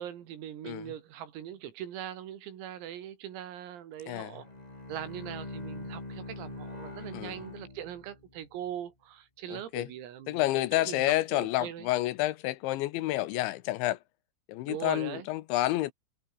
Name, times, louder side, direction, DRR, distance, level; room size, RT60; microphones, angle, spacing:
voice 1, 0.0-4.5 4.9-11.9 14.7-15.3, right 10 dB, 85° right, 5.5 m, -41 dB
voice 2, 4.1-4.4 7.1-7.4 9.5-9.9 10.3-14.0 14.5-15.9, left 16 dB, 75° left, 2.9 m, -29 dB
Bowed string instrument, 4.4-8.4, left 2 dB, 20° left, 1.0 m, -43 dB
omnidirectional pair, 5.9 m